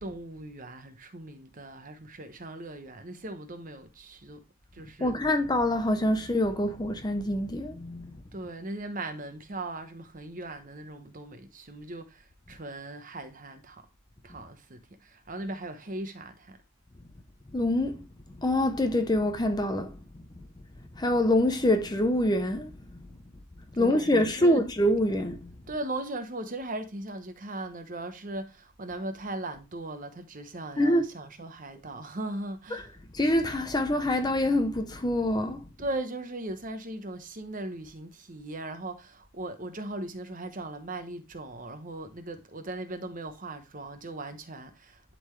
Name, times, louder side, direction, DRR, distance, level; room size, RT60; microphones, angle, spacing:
voice 1, 0.0-4.4 4.7-5.2 8.3-13.8 14.2-16.6 23.7-24.6 25.7-32.9 35.8-45.0, right 2 dB, 40° right, 1.0 m, -38 dB
voice 2, 5.0-8.2 17.5-18.1 18.4-20.0 20.4-20.5 21.0-23.1 23.7-25.5 30.8-31.1 32.7-35.7, left 1 dB, 20° left, 0.6 m, -26 dB
11.0 x 3.9 x 3.2 m
head